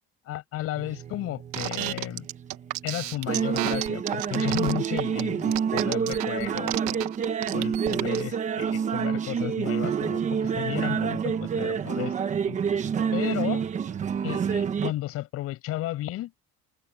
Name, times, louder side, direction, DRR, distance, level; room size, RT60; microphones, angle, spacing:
voice 1, 0.3-2.3 2.8-7.0 7.5-12.6 13.1-13.6 14.2-16.3, left 15 dB, 50° left, 7.9 m, -33 dB
sound 1, 0.8-14.9, right 7 dB, 25° right, 1.1 m, -28 dB
sound 2, 1.5-8.2, right 18 dB, 70° right, 1.4 m, -31 dB
open air
cardioid pair, 175°, 29 cm